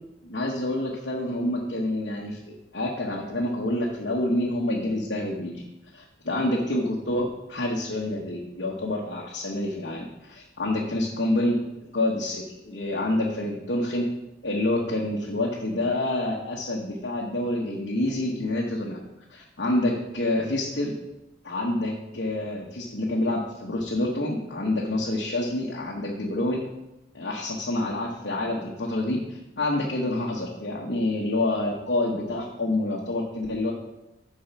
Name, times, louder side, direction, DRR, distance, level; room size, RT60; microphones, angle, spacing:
voice 1, 0.2-2.4 2.7-5.6 5.9-14.1 14.4-19.0 19.3-20.9 21.4-26.6 27.1-33.7, left 1 dB, 90° left, -3 dB, 1.2 m, -27 dB
9.0 x 4.7 x 5.6 m, 0.95 s
head